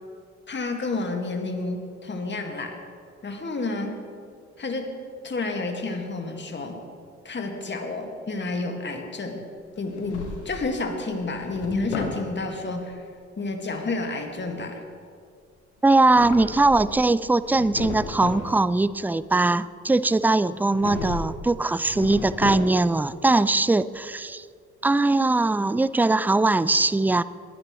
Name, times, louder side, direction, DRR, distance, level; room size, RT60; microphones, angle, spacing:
voice 1, 0.5-2.8 3.2-4.0 4.6-4.9 5.2-6.8 7.2-9.4 9.8-13.1 13.4-14.8, left 3 dB, 35° left, 3 dB, 2.0 m, -30 dB
Drawer open or close, 9.8-10.7 11.2-12.2 15.8-17.0 17.4-18.5 20.7-21.4 21.7-23.0, left 4 dB, 90° left, 1.2 m, -34 dB
voice 2, 15.8-24.4 24.8-27.2, right 2 dB, 5° right, 17 dB, 0.4 m, -21 dB
21.5 x 10.0 x 3.2 m, 2.2 s
hypercardioid pair, 45°, 32 cm